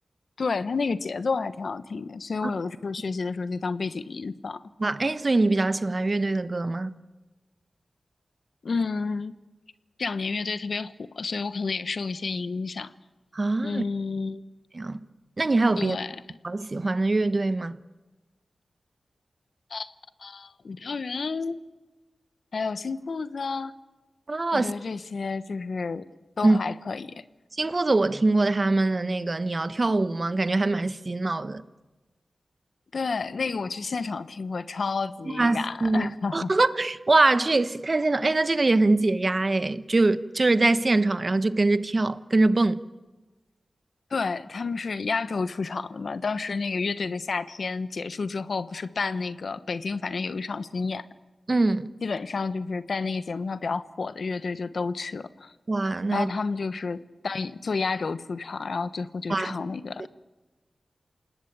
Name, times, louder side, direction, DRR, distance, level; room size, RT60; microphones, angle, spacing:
voice 1, 0.4-4.6 8.6-9.3 10.0-12.9 13.6-14.4 15.8-16.4 19.7-19.9 20.2-21.6 22.5-23.7 24.5-26.1 26.4-27.2 32.9-36.5 44.1-51.1 52.0-55.5 56.1-60.1, left 4 dB, 65° left, 1.1 m, -30 dB
voice 2, 4.8-6.9 13.3-13.8 14.7-15.0 15.4-16.0 16.4-17.7 24.3-24.7 26.4-26.6 27.5-31.6 35.3-42.8 51.5-51.9 55.7-56.3 59.3-59.5, right 2 dB, 40° right, 1.2 m, -23 dB
28.0 x 19.0 x 8.8 m
wide cardioid pair, 70°, 0 cm